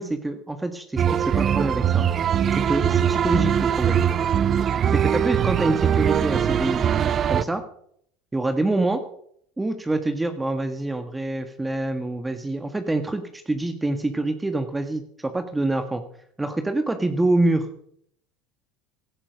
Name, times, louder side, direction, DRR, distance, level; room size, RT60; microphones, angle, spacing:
voice 1, 0.0-2.1 2.5-4.0 4.9-7.6 8.3-9.0 9.6-16.0 16.4-17.7, right 2 dB, 10° right, 7 dB, 1.6 m, -26 dB
sound 1, 1.0-7.4, right 9 dB, 40° right, 0.8 m, -21 dB
16.5 x 13.0 x 5.2 m, 0.66 s
supercardioid pair, 95°, 0 cm